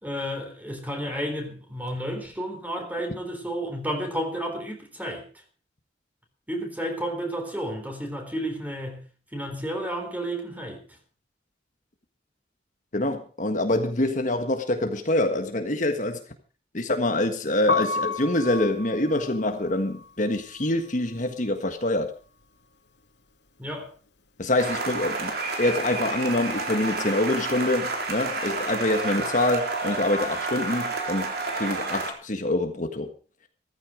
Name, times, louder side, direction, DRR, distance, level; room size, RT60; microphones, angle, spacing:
voice 1, 0.0-5.3 6.5-9.0 9.3-10.8 23.6-23.9, equal, 10° right, 3.9 m, -31 dB
voice 2, 12.9-16.2 16.7-22.1 24.4-25.3 25.6-33.1, left 1 dB, 45° left, 1.6 m, -25 dB
Piano, 17.5-23.5 23.7-25.3 25.6-32.0, left 3 dB, 75° left, 2.8 m, -35 dB
sound 1, 24.6-32.1, right 3 dB, 60° right, 3.8 m, -30 dB
15.5 x 14.5 x 5.1 m
head